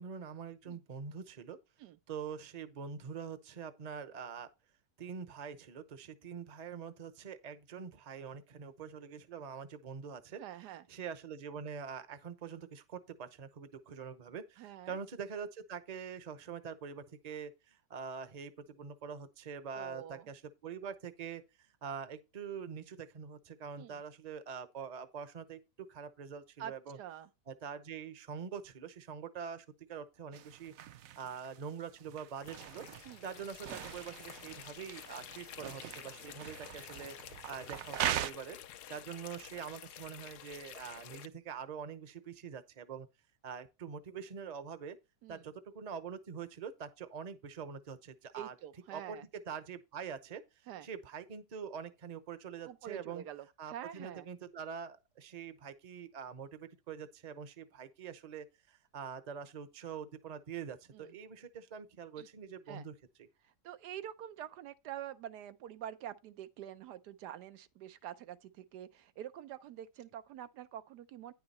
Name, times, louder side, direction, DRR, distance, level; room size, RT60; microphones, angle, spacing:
voice 1, 0.0-1.6 2.1-4.5 5.0-10.4 10.7-21.4 21.8-27.0 27.5-30.7 31.2-32.9 33.2-37.2 37.5-38.6 38.9-43.1 43.4-45.0 45.3-48.5 48.9-53.2 53.6-62.9, right 7 dB, 35° right, 0.7 m, -44 dB
voice 2, 10.4-10.8 14.6-15.0 19.7-20.3 23.8-24.0 26.6-27.3 33.0-33.2 45.2-45.5 48.3-49.3 50.7-50.9 52.6-54.3 60.9-61.1 62.2-62.3 62.7-62.9 63.4-71.3, right 11 dB, 90° right, 1.3 m, -46 dB
sound 1, 30.3-38.3, right 11 dB, 65° right, 0.9 m, -41 dB
sound 2, 32.4-41.3, left 11 dB, 80° left, 1.2 m, -51 dB
9.7 x 5.8 x 4.2 m
omnidirectional pair, 1.7 m